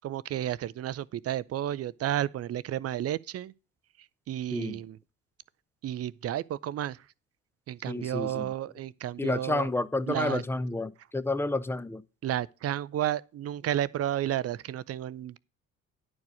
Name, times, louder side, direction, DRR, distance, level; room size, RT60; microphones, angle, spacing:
voice 1, 0.0-3.5 4.3-5.0 5.8-7.1 7.7-9.7 10.1-10.4 12.2-15.4, right 12 dB, 35° right, 0.5 m, -32 dB
voice 2, 7.9-8.5 9.2-12.0, left 2 dB, 5° left, 0.6 m, -30 dB
10.5 x 4.7 x 6.3 m
hypercardioid pair, 50°, 41 cm